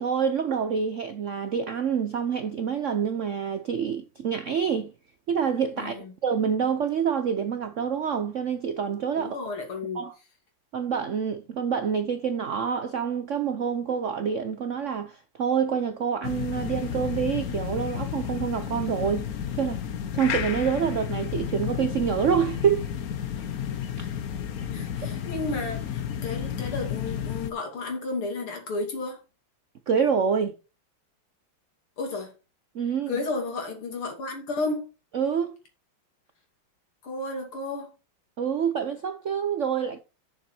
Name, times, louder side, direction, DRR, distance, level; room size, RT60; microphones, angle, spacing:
voice 1, 0.0-4.9 5.3-9.4 9.9-10.1 10.7-19.3 19.5-19.8 20.1-22.9 24.0-24.1 29.9-30.5 32.7-33.2 35.1-35.5 38.4-40.0, right 7 dB, 85° right, 0.6 m, -27 dB
voice 2, 5.8-6.1 9.2-10.1 24.7-29.2 32.0-32.3 33.1-34.9 37.0-37.9, left 3 dB, 85° left, 3.6 m, -32 dB
sound 1, 16.2-27.5, left 9 dB, 55° left, 1.1 m, -32 dB
7.3 x 7.1 x 4.4 m
omnidirectional pair, 2.3 m